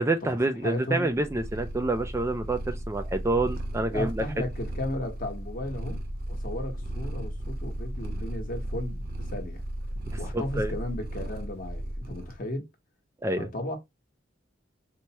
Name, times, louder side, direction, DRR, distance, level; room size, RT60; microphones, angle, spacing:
voice 1, 0.0-4.2 10.3-10.7 13.2-13.5, right 2 dB, 15° right, 0.3 m, -27 dB
voice 2, 0.6-1.1 3.9-9.6 10.2-12.7 13.4-13.8, left 1 dB, 45° left, 1.1 m, -35 dB
Purr, 1.1-12.4, right 1 dB, 50° right, 0.8 m, -35 dB
4.5 x 2.1 x 2.8 m
head